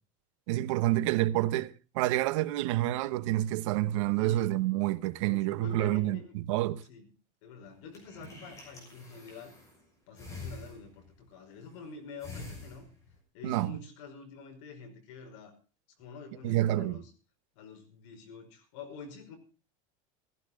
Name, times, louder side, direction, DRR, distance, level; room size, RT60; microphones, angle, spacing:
voice 1, 0.5-6.8 13.4-13.8 16.4-17.0, right 15 dB, 65° right, 1.0 m, -28 dB
voice 2, 4.2-4.5 5.3-6.3 6.8-7.1 7.4-9.5 10.1-12.9 13.3-15.6 16.0-17.1 17.6-19.4, left 5 dB, 60° left, 5.4 m, -47 dB
sound 1, 7.7-9.8 10.2-11.2 11.5-11.9 12.2-13.2, left 3 dB, 20° left, 6.3 m, -46 dB
16.0 x 15.5 x 3.8 m
supercardioid pair, 175°, 17 cm